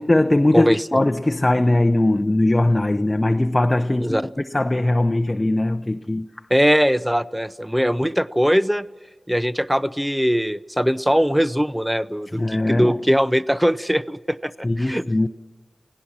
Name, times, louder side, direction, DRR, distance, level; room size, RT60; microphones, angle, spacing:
voice 1, 0.0-6.3 12.3-12.9 14.6-15.3, left 1 dB, 25° left, 0.8 m, -20 dB
voice 2, 0.5-0.9 4.0-4.2 6.5-8.9 9.3-15.0, equal, 5° right, 0.7 m, -21 dB
29.0 x 17.5 x 6.0 m
cardioid pair, 50°, 0 cm